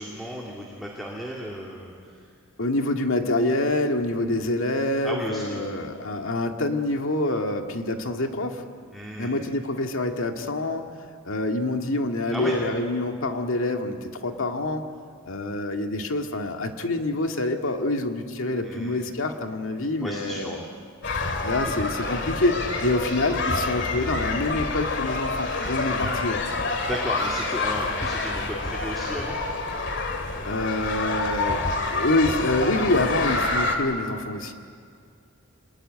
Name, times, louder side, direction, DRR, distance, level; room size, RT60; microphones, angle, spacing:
voice 1, 0.0-2.2 5.0-5.7 8.9-9.3 12.3-12.6 18.6-19.0 20.0-20.7 21.6-21.7 25.9-26.1 26.8-29.4, equal, ahead, -3 dB, 2.5 m, -34 dB
voice 2, 2.6-8.6 9.2-10.9 11.2-14.8 15.3-20.6 21.4-26.4 30.3-34.5, left 2 dB, 70° left, 4 dB, 2.0 m, -26 dB
sound 1, 21.0-33.8, left 3 dB, 55° left, 2.4 m, -27 dB
26.5 x 21.0 x 9.9 m, 2.3 s
head